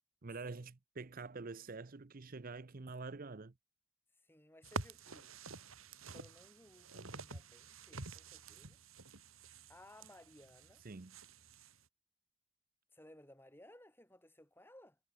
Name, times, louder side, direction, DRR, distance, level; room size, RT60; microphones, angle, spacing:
voice 1, 0.2-3.5 10.8-11.1, right 3 dB, 40° right, 0.6 m, -46 dB
voice 2, 4.2-5.4 6.1-8.8 9.7-10.8 12.9-15.0, left 1 dB, 10° left, 6.3 m, -60 dB
sound 1, 4.6-11.8, right 3 dB, 80° right, 3.2 m, -49 dB
head